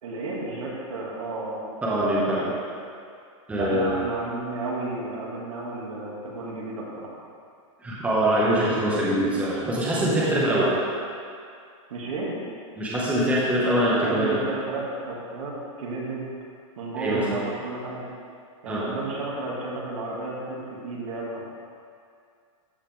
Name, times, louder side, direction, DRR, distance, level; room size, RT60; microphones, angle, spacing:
voice 1, 0.0-1.6 2.3-2.5 3.5-7.1 10.5-10.7 11.9-12.4 14.0-16.3 16.8-18.0 18.6-21.5, right 2 dB, 85° right, -4 dB, 2.5 m, -32 dB
voice 2, 1.8-2.4 3.5-3.9 7.8-10.6 12.8-14.5 17.0-17.2 18.7-18.8, right 1 dB, 10° right, -7 dB, 1.5 m, -23 dB
13.5 x 5.7 x 3.6 m, 2.3 s
supercardioid pair, 160°, 17 cm